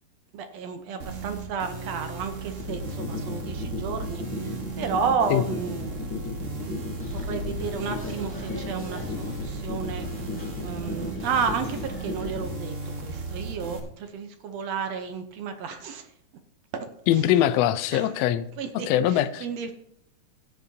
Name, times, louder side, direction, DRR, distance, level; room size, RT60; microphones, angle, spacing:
voice 1, 0.3-6.2 6.6-10.1 10.6-16.1 16.7-16.9 17.9-18.1 18.6-19.7, right 6 dB, 70° right, 7 dB, 1.8 m, -32 dB
sound 1, 1.0-13.8, right 3 dB, 40° right, 1.2 m, -36 dB
sound 2, 2.6-12.6, left 5 dB, 50° left, 1.7 m, -35 dB
sound 3, 7.0-12.4, left 2 dB, 5° left, 1.4 m, -40 dB
voice 2, 17.1-18.4 18.7-19.5, left 11 dB, 75° left, 13 dB, 1.5 m, -22 dB
16.5 x 8.3 x 2.8 m, 0.75 s
omnidirectional pair, 3.4 m